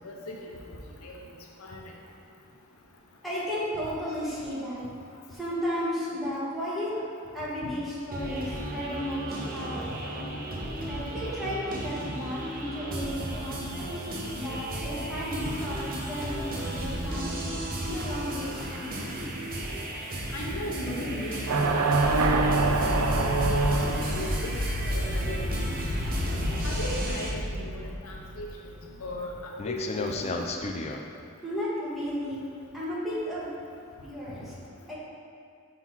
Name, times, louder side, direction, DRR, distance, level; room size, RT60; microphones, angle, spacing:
voice 1, 0.0-0.5 1.0-1.2 1.6-1.8 20.3-22.4 22.6-22.7 23.0-25.5 26.6-28.5 29.0-30.4, left 1 dB, 90° left, -1 dB, 0.8 m, -37 dB
voice 2, 3.2-4.8 5.3-7.1 7.3-10.3 10.9-17.4 17.8-19.3 31.4-33.6 34.0-34.6 34.9-35.0, equal, ahead, -10 dB, 1.3 m, -34 dB
sound 1, 8.1-27.3, right 1 dB, 45° right, 0.7 m, -34 dB
sound 2, 21.5-24.3, right 3 dB, 85° right, 0.5 m, -24 dB
sound 3, 22.0-29.3 29.6-31.0, left 1 dB, 30° left, 0.3 m, -32 dB
5.7 x 3.7 x 4.5 m, 2.3 s
head